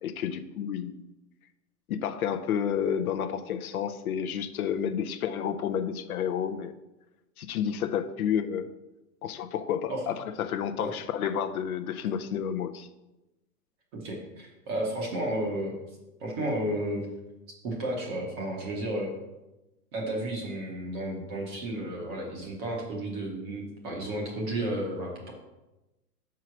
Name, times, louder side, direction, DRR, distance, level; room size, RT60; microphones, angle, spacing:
voice 1, 0.0-1.1 1.9-6.7 7.4-8.7 9.2-12.9, left 8 dB, 60° left, 8 dB, 0.6 m, -30 dB
voice 2, 13.9-15.8 16.2-17.1 17.6-19.1 19.9-25.3, right 1 dB, 15° right, -1 dB, 0.7 m, -32 dB
6.1 x 4.7 x 5.8 m, 1.0 s
hypercardioid pair, 170°, 48 cm